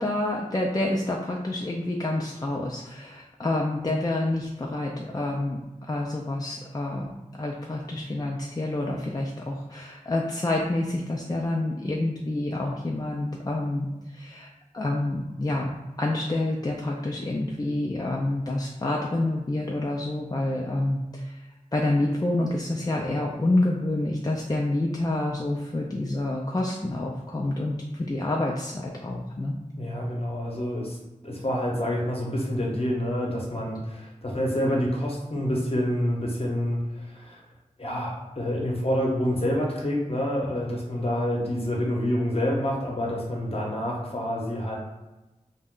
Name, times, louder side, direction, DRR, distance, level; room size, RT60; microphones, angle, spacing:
voice 1, 0.0-5.6 5.9-14.5 14.7-15.7 16.0-21.4 21.7-29.6, left 2 dB, 30° left, -2 dB, 0.3 m, -28 dB
voice 2, 29.8-37.4 37.8-44.8, equal, 45° left, -2 dB, 0.8 m, -27 dB
2.4 x 2.1 x 3.6 m, 1.1 s
wide cardioid pair, 50°, 14 cm